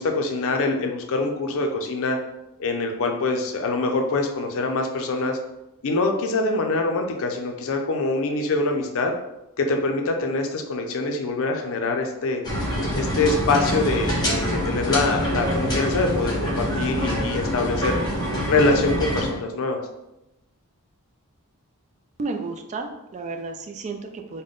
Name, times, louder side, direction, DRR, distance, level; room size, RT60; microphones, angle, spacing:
voice 1, 0.0-2.2 2.6-5.4 5.8-9.1 9.6-12.4 12.9-18.0 18.4-19.8, left 3 dB, 65° left, 4 dB, 0.5 m, -24 dB
sound 1, 12.4-19.3, equal, 20° left, 0.9 m, -25 dB
voice 2, 22.2-24.4, right 3 dB, 30° right, 4 dB, 0.3 m, -32 dB
3.7 x 2.1 x 3.5 m, 0.92 s
head